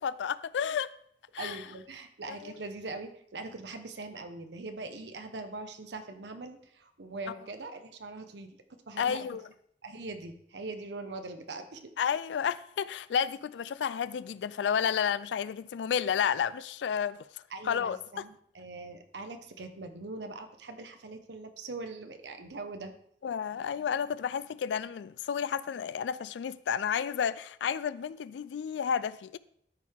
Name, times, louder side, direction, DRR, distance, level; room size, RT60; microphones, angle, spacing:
voice 1, 0.0-0.9 1.3-1.6 2.3-2.5 9.0-9.4 12.0-18.0 23.2-29.4, left 7 dB, 85° left, 0.3 m, -31 dB
voice 2, 1.4-8.6 8.9-9.3 9.8-11.8 17.5-22.9, right 3 dB, 75° right, 0.9 m, -42 dB
13.5 x 4.7 x 3.6 m
head